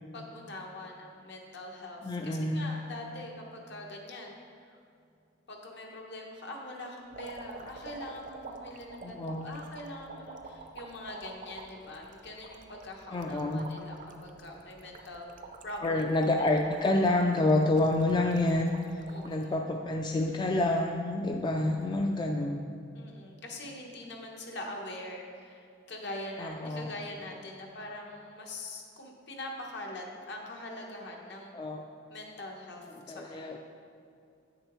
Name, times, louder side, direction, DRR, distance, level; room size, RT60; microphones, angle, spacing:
voice 1, 0.1-4.4 5.5-15.3 15.6-16.0 16.3-16.4 19.1-19.6 22.9-31.6 32.1-33.6, left 1 dB, 65° left, 1 dB, 1.0 m, -43 dB
voice 2, 2.0-2.7 9.0-9.5 13.1-13.7 15.8-18.7 19.2-22.6 26.4-27.0 31.5-31.8 33.1-33.6, left 2 dB, 25° left, 2 dB, 0.3 m, -28 dB
sound 1, 7.1-19.4 19.9-20.7 21.6-21.8, right 3 dB, 45° right, 0.5 m, -48 dB
8.5 x 6.5 x 3.1 m, 2.5 s
head